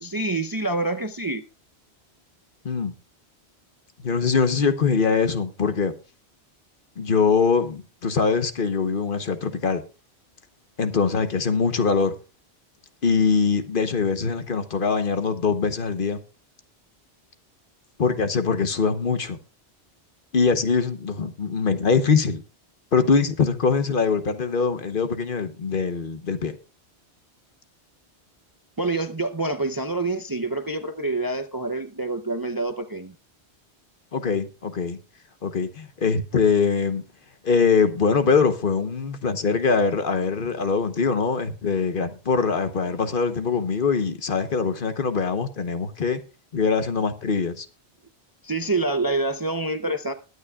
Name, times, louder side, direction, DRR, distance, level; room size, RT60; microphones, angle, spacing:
voice 1, 0.0-1.4 28.8-33.1 48.4-50.1, right 2 dB, 25° right, 0.6 m, -26 dB
voice 2, 4.0-5.9 7.0-9.8 10.8-12.1 13.0-16.2 18.0-19.4 20.3-22.4 22.9-26.6 34.1-35.0 35.4-37.0 37.4-46.2 46.5-47.7, left 5 dB, 55° left, 1.1 m, -23 dB
21.5 x 9.6 x 2.3 m
omnidirectional pair, 1.1 m